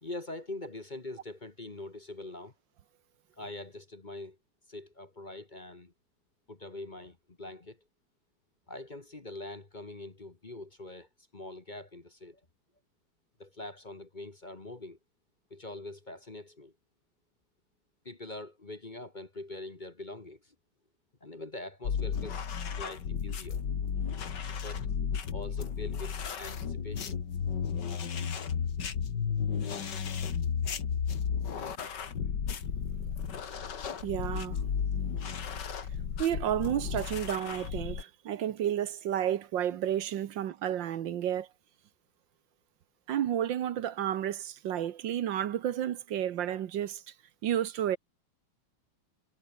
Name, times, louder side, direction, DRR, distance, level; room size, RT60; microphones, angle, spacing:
voice 1, 0.0-2.5 3.4-4.4 4.7-5.9 6.5-7.8 8.7-12.4 13.4-15.0 15.5-16.7 18.1-20.6 21.2-23.6 24.5-24.9 25.3-27.2, left 2 dB, 25° left, 1.6 m, -43 dB
sound 1, 21.8-38.0, left 7 dB, 65° left, 2.4 m, -33 dB
voice 2, 34.0-34.6 36.2-41.5 43.1-47.0 47.4-48.0, right 10 dB, 75° right, 1.7 m, -31 dB
omnidirectional pair, 2.1 m